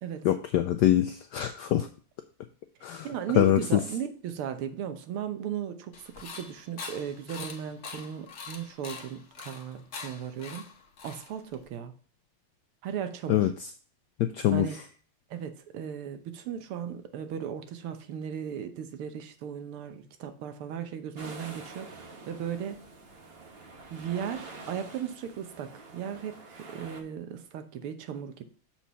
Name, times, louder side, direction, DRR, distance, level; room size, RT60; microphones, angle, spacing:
voice 1, 0.2-1.9 2.8-3.1 3.4-3.8 13.3-13.5 14.2-14.7, left 12 dB, 80° left, 8 dB, 0.9 m, -24 dB
voice 2, 3.0-10.7 11.0-11.9 12.8-13.5 14.5-14.8 15.3-22.0 22.3-22.8 23.9-28.4, right 8 dB, 85° right, 8 dB, 1.8 m, -36 dB
sound 1, 5.9-11.7, left 5 dB, 45° left, 1.0 m, -43 dB
sound 2, 21.1-27.0, right 3 dB, 40° right, 1.0 m, -47 dB
7.3 x 4.4 x 5.6 m, 0.42 s
omnidirectional pair, 2.3 m